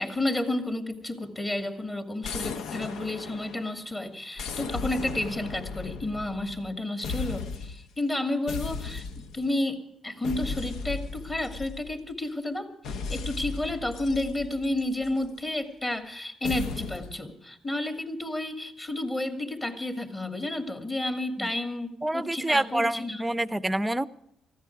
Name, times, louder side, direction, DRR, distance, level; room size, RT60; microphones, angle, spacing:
voice 1, 0.0-9.0 9.3-12.7 13.1-23.2, left 1 dB, 20° left, 7 dB, 2.6 m, -31 dB
sound 1, 2.2-3.8 4.4-6.7 7.0-7.9 8.5-9.5 10.2-12.1 12.8-15.3 16.4-17.2, left 5 dB, 80° left, 0.9 m, -36 dB
voice 2, 22.0-24.1, right 1 dB, 10° right, 16 dB, 0.7 m, -27 dB
19.5 x 14.5 x 4.8 m, 0.77 s
cardioid pair, 90°, 0 cm